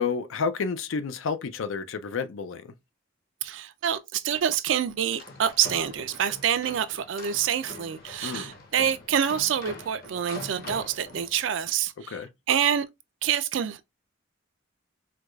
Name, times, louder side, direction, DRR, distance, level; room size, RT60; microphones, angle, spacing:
voice 1, 0.0-2.7 8.2-8.5 12.1-12.3, left 5 dB, 80° left, 0.4 m, -30 dB
voice 2, 3.4-12.2 12.5-12.9 13.2-13.8, right 9 dB, 65° right, 0.4 m, -27 dB
sound 1, 5.0-11.6, left 2 dB, 50° left, 0.8 m, -44 dB
4.6 x 2.3 x 2.3 m
head